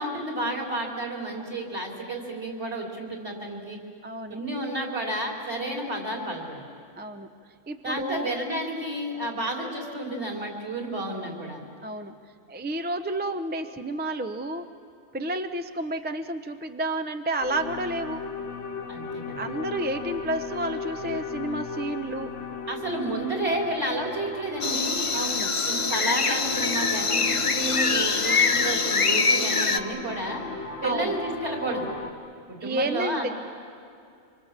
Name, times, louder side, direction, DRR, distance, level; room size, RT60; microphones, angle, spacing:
voice 1, 0.0-3.8 4.3-6.6 7.8-11.6 18.9-19.5 22.7-25.0 25.6-30.4 30.8-31.9 32.5-33.3, right 1 dB, 55° right, -1 dB, 4.0 m, -31 dB
voice 2, 4.0-4.4 7.0-7.3 7.7-8.3 11.8-12.1 12.5-14.7 15.1-18.2 19.4-22.3 25.1-25.5 30.8-31.1 32.6-33.3, right 1 dB, 10° right, 7 dB, 0.5 m, -30 dB
sound 1, 17.4-32.1, left 5 dB, 65° left, 1.7 m, -37 dB
sound 2, 24.6-29.8, left 4 dB, 30° left, 0.7 m, -24 dB
26.0 x 24.5 x 7.4 m, 2.5 s
omnidirectional pair, 1.4 m